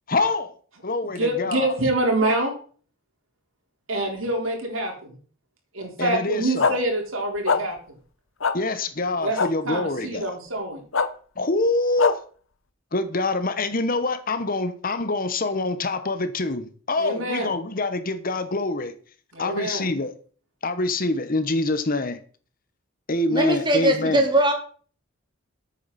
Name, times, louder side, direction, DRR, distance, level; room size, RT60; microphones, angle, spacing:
voice 1, 0.1-0.5 0.8-1.7 6.0-6.8 8.5-10.3 11.4-12.2 12.9-18.9 19.4-20.1 20.6-22.2 23.1-24.2, left 2 dB, 40° left, 1.1 m, -25 dB
voice 2, 1.0-2.5 3.9-5.2 5.7-7.8 9.2-9.4 9.7-10.8 17.0-17.5 19.3-19.9, right 1 dB, 75° right, 4.2 m, -26 dB
sound 1, 6.6-6.7 7.5-7.6 8.4-8.5 9.4-9.5 10.9-11.1 12.0-12.1, left 5 dB, 70° left, 1.0 m, -20 dB
voice 3, 23.3-24.5, right 1 dB, 20° right, 1.8 m, -20 dB
12.0 x 8.6 x 4.2 m
head